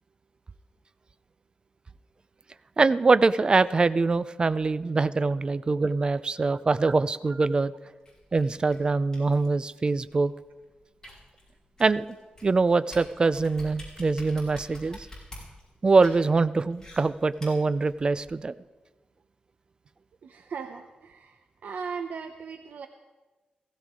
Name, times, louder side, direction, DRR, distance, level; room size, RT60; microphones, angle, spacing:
voice 1, 2.8-7.7 8.3-10.3 11.8-12.1 12.4-15.1 15.8-18.5, right 3 dB, 30° right, 15 dB, 0.4 m, -23 dB
sound 1, 8.0-18.3, left 1 dB, 25° left, 5.3 m, -48 dB
voice 2, 20.2-22.9, right 5 dB, 85° right, 6 dB, 0.7 m, -38 dB
16.5 x 15.5 x 3.7 m, 1.2 s
wide cardioid pair, 120°, 3 cm